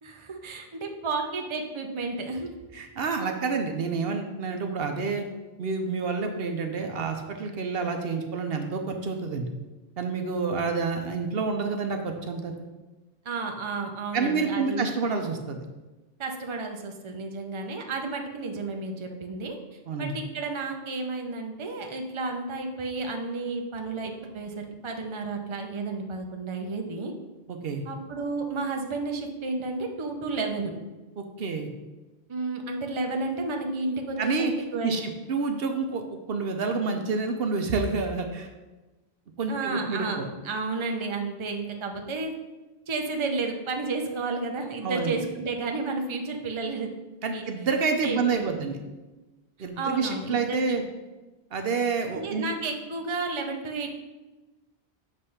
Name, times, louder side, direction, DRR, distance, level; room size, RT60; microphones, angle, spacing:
voice 1, 0.0-2.5 13.2-14.9 16.2-27.1 27.8-30.7 32.3-35.0 39.5-42.3 42.9-46.9 47.3-47.4 48.0-48.6 49.6-50.8 52.1-54.0, right 3 dB, 30° right, 3 dB, 0.7 m, -32 dB
voice 2, 2.7-5.3 5.6-9.5 10.0-12.5 14.1-15.6 19.9-20.2 27.5-27.8 31.2-31.7 34.2-34.5 34.8-36.0 36.3-38.5 39.4-40.3 44.8-45.1 47.2-48.8 49.6-50.8 51.5-52.5, right 4 dB, 65° right, 5 dB, 0.9 m, -28 dB
7.8 x 3.3 x 5.6 m, 1.1 s
omnidirectional pair, 1.1 m